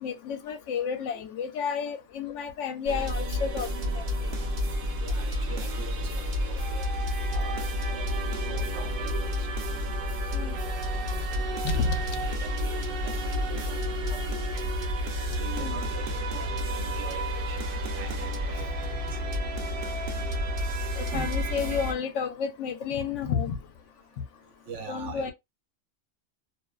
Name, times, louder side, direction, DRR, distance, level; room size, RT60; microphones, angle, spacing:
voice 1, 0.0-3.7 3.9-4.0 9.1-9.2 10.3-10.6 11.6-11.9 14.1-14.2 15.5-15.8 21.0-23.6 24.9-25.3, left 6 dB, 75° left, 0.9 m, -31 dB
sound 1, 2.9-21.9, equal, 55° right, 0.8 m, -30 dB
voice 2, 5.0-6.9 7.3-9.5 11.3-12.0 12.3-14.7 15.3-18.7 19.1-19.2 21.1-21.3 24.7-25.3, right 5 dB, 75° right, 1.0 m, -44 dB
2.5 x 2.2 x 2.2 m
omnidirectional pair, 1.3 m